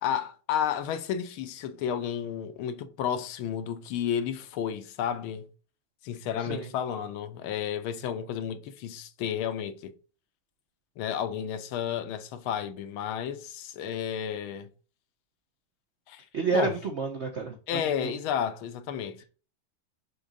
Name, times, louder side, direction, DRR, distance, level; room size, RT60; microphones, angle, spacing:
voice 1, 0.0-5.5 6.0-9.9 11.0-14.7 16.1-16.2 16.5-16.7 17.7-19.2, left 9 dB, 80° left, 1.5 m, -32 dB
voice 2, 6.4-6.7 16.3-18.1, right 5 dB, 65° right, 0.6 m, -30 dB
6.3 x 3.0 x 5.1 m
omnidirectional pair, 2.3 m